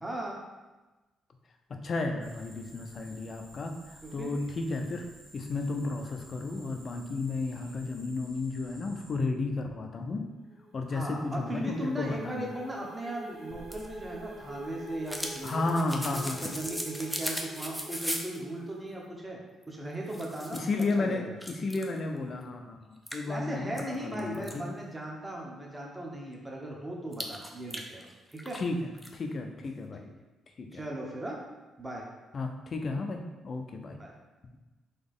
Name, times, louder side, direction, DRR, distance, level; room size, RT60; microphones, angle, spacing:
voice 1, 0.0-0.4 4.0-4.3 10.9-15.9 16.1-19.4 19.7-21.3 23.2-28.6 30.0-30.1 30.7-31.4 31.8-32.0 34.0-34.1, right 1 dB, 15° right, -2 dB, 1.0 m, -38 dB
voice 2, 1.7-5.1 5.3-10.2 10.7-12.5 15.4-16.5 20.5-24.7 28.5-28.8 29.1-30.1 30.6-30.8 32.3-34.0, left 3 dB, 45° left, 4 dB, 0.5 m, -33 dB
sound 1, 2.2-9.1, right 1 dB, 75° right, 1.3 m, -55 dB
sound 2, 10.3-19.0, right 2 dB, 60° right, 0.9 m, -47 dB
sound 3, 13.5-18.4 19.6-19.7 20.1-20.9 21.4-22.0 22.4-22.5 23.1-24.5 27.1-28.6 28.9-29.1, equal, ahead, 0.5 m, -38 dB
4.0 x 2.9 x 3.6 m, 1.1 s
cardioid pair, 90°, 0 cm